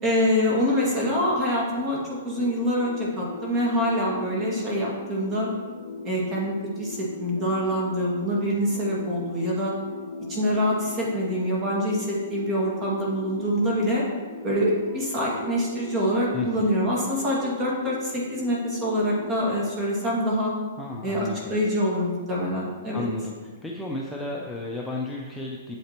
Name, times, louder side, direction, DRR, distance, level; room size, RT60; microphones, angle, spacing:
voice 1, 0.0-5.5 6.0-9.7 10.3-14.1 14.4-20.5 21.0-23.1, equal, 20° right, -4 dB, 2.1 m, -25 dB
sound 1, 2.4-19.4, left 4 dB, 25° left, 1.3 m, -38 dB
voice 2, 16.3-16.7 20.8-21.5 22.9-23.4 23.6-25.8, left 2 dB, 5° left, -3 dB, 0.6 m, -33 dB
8.3 x 7.6 x 3.0 m, 1.5 s
hypercardioid pair, 155°, 0 cm